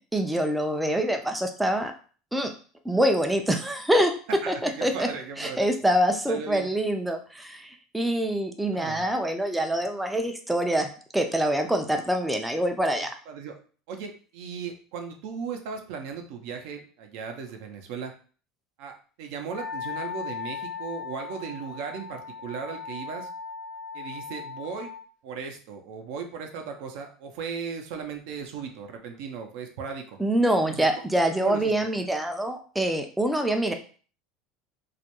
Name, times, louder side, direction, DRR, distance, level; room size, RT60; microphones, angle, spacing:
voice 1, 0.1-1.9 2.3-2.5 2.9-4.1 4.5-5.1 5.4-13.1 30.2-33.7, right 1 dB, 5° right, 4 dB, 0.3 m, -25 dB
voice 2, 4.4-5.7 6.3-6.7 8.7-9.1 13.3-13.5 13.9-18.1 18.8-23.3 23.9-24.9 25.2-30.2 30.7-30.9 31.4-31.7, right 6 dB, 70° right, 5 dB, 0.5 m, -37 dB
Wind instrument woodwind instrument, 19.5-25.0, left 6 dB, 80° left, 0.8 m, -38 dB
2.3 x 2.2 x 2.8 m, 0.41 s
supercardioid pair, 115°, 0 cm